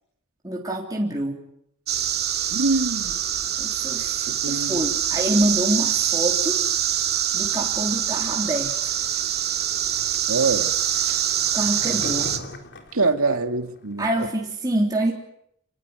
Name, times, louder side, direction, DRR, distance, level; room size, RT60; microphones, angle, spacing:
voice 1, 0.4-1.4 3.6-6.6 7.3-8.7 11.5-12.3 13.0-13.1 14.0-15.1, right 1 dB, 15° right, -2 dB, 3.7 m, -26 dB
sound 1, 1.9-12.4, right 10 dB, 50° right, 2.6 m, -24 dB
voice 2, 2.5-3.2 4.4-4.8 10.3-10.7 11.1-11.2 12.9-14.3, right 3 dB, 70° right, 7 dB, 2.3 m, -24 dB
Skateboard, 8.8-14.3, left 1 dB, 55° left, 4.4 m, -41 dB
29.0 x 20.0 x 9.8 m, 0.74 s
head